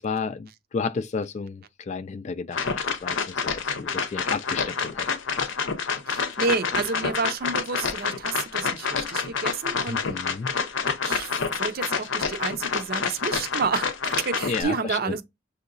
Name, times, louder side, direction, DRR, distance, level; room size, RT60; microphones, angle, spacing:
voice 1, 0.0-5.1 9.9-10.5 14.4-15.2, left 5 dB, 35° left, 0.3 m, -32 dB
sound 1, 2.5-14.6, left 5 dB, 70° left, 0.7 m, -28 dB
voice 2, 6.1-10.1 11.0-11.3 11.6-15.2, right 4 dB, 50° right, 0.6 m, -30 dB
7.0 x 2.8 x 2.6 m
head